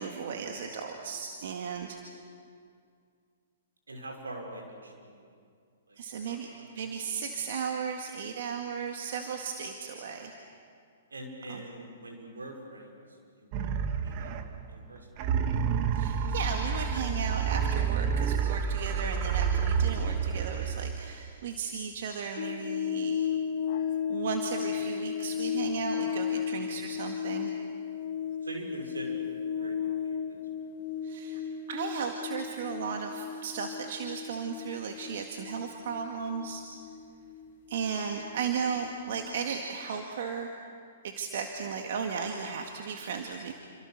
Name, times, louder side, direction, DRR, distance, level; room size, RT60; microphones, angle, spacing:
voice 1, 0.0-2.1 6.0-6.5 6.8-10.3 11.5-11.6 15.9-23.2 24.1-27.5 31.0-31.4 31.7-36.7 37.7-40.5 41.0-43.5, right 6 dB, 60° right, 3 dB, 2.1 m, -35 dB
voice 2, 3.9-5.3 5.9-6.0 6.2-6.9 9.3-9.4 11.1-14.3 14.7-15.5 26.5-26.8 28.4-29.2 29.6-30.4, right 1 dB, 85° right, 2 dB, 6.1 m, -44 dB
sound 1, 13.5-14.7 15.2-21.1, right 6 dB, 40° right, 1.6 m, -29 dB
sound 2, 22.4-38.9 39.2-39.3, left 7 dB, 50° left, 2.5 m, -34 dB
28.5 x 26.5 x 6.7 m, 2.2 s
hypercardioid pair, 120°, 0 cm